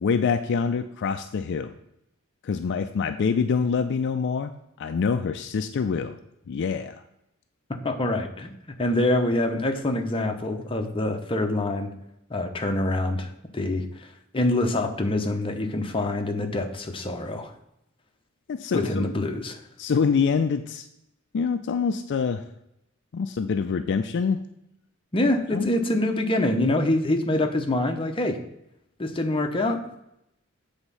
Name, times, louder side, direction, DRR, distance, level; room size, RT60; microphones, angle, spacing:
voice 1, 0.0-1.7 2.4-4.5 4.8-6.2 6.5-7.0 18.5-19.0 19.8-20.9 21.3-22.4 23.1-24.4 25.5-25.6, left 5 dB, 55° left, 8 dB, 0.4 m, -25 dB
voice 2, 7.8-8.5 8.8-11.9 12.3-14.1 14.3-17.5 18.7-19.6 25.1-28.4 29.0-29.8, left 1 dB, 25° left, 4 dB, 0.7 m, -25 dB
7.9 x 3.6 x 5.4 m, 0.82 s
head